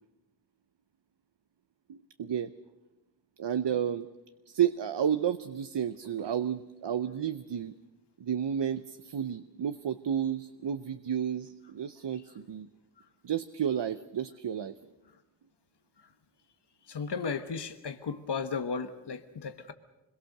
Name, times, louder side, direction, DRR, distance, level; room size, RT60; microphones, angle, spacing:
voice 1, 1.9-2.5 3.4-4.1 4.5-7.7 8.2-12.7 13.2-14.8, right 9 dB, 70° right, 0.8 m, -31 dB
voice 2, 16.9-19.7, left 5 dB, 65° left, 1.2 m, -35 dB
26.0 x 22.0 x 6.6 m
wide cardioid pair, 105°, 44 cm